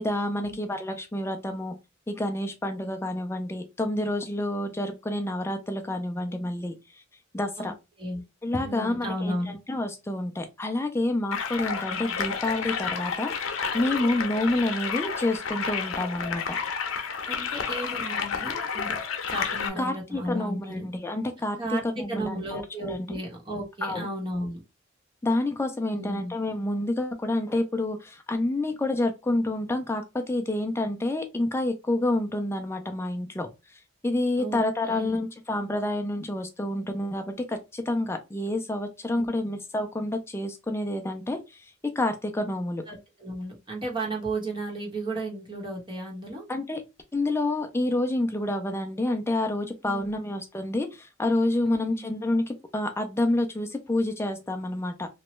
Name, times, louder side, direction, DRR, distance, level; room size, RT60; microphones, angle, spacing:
voice 1, 0.0-1.7 2.1-7.0 7.3-7.7 8.4-9.4 9.7-16.6 19.8-21.6 22.0-22.6 22.9-23.1 23.8-24.1 25.2-41.7 42.0-42.8 46.5-46.8 47.1-55.1, left 1 dB, 10° left, 0.3 m, -28 dB
voice 2, 8.6-9.6 17.3-19.0 19.3-20.9 21.6-24.6 25.9-26.3 34.4-35.2 39.1-39.5 42.9-46.4 49.8-50.2 51.6-52.1, right 1 dB, 25° right, 1.0 m, -34 dB
sound 1, 11.3-19.7, left 6 dB, 85° left, 0.6 m, -31 dB
3.0 x 2.2 x 3.0 m
head